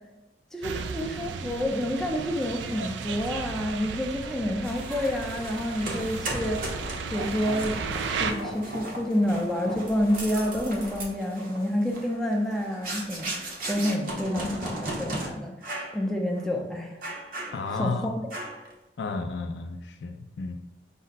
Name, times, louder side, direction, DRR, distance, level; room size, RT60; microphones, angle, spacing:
voice 1, 0.5-6.6 7.1-13.4 13.7-15.5 15.9-17.0 17.7-18.1, equal, 5° left, 0 dB, 0.5 m, -28 dB
sound 1, 0.6-8.3, right 5 dB, 90° right, 0.3 m, -35 dB
sound 2, 4.6-15.3 15.6-16.0 16.3-16.5 17.0-17.9 18.3-18.7, right 1 dB, 55° right, 0.7 m, -36 dB
voice 2, 17.5-18.1 19.0-20.6, left 4 dB, 75° left, 6 dB, 0.4 m, -32 dB
5.3 x 2.1 x 4.0 m, 0.99 s
head